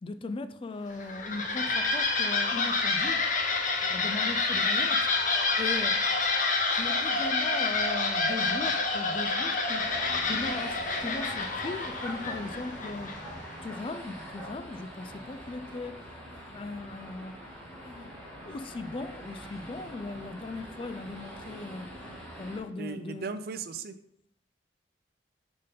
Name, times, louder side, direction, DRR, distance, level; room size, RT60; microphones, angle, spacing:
voice 1, 0.0-3.3 3.8-5.1 5.6-6.0 6.7-9.9 10.2-13.1 13.6-16.0 16.3-17.3 17.8-18.1 18.5-21.9 22.3-23.3, left 3 dB, 30° left, 0.3 m, -38 dB
sound 1, 0.9-13.5, left 3 dB, 45° left, 0.9 m, -28 dB
sound 2, 9.8-22.6, equal, 5° left, 1.6 m, -43 dB
voice 2, 22.8-24.0, right 5 dB, 55° right, 0.5 m, -37 dB
5.0 x 4.4 x 5.3 m
head